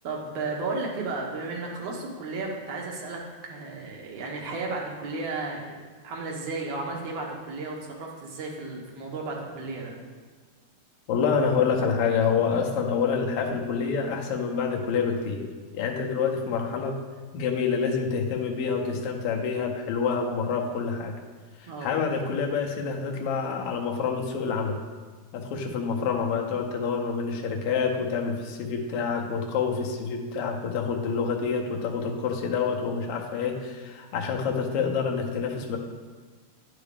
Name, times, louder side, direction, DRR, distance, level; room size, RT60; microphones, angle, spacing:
voice 1, 0.0-3.2 3.5-5.8 6.0-9.9 21.7-21.9, right 3 dB, 65° right, -1 dB, 1.9 m, -33 dB
voice 2, 11.1-15.5 15.7-17.0 17.3-21.1 21.6-24.8 25.3-35.8, left 5 dB, 75° left, 1 dB, 1.4 m, -27 dB
9.6 x 4.9 x 3.4 m, 1.4 s
omnidirectional pair, 3.4 m